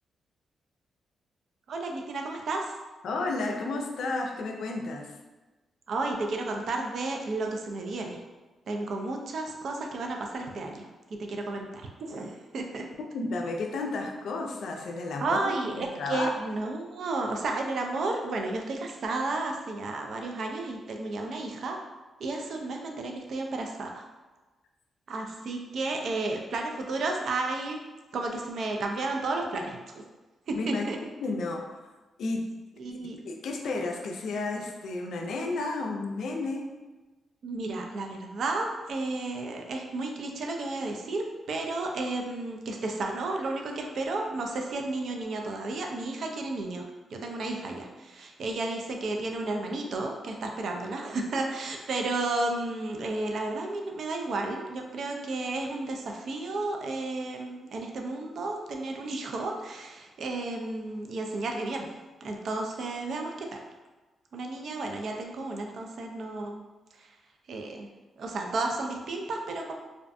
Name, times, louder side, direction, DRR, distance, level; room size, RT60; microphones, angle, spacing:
voice 1, 1.7-2.8 5.9-8.2 8.7-10.9 11.2-12.8 15.2-21.8 22.2-24.0 25.1-27.8 28.1-30.0 30.5-31.0 32.8-33.2 37.4-61.9 62.2-63.6 64.3-66.6 66.9-67.1 67.5-67.9 68.2-69.7, right 2 dB, 65° right, 2 dB, 0.4 m, -32 dB
voice 2, 3.0-5.1 13.1-16.3 30.5-30.9 31.2-31.6 32.2-32.4 33.2-36.7, left 3 dB, 75° left, 2 dB, 0.3 m, -32 dB
2.5 x 2.2 x 2.5 m, 1.2 s
cardioid pair, 65°, 0 cm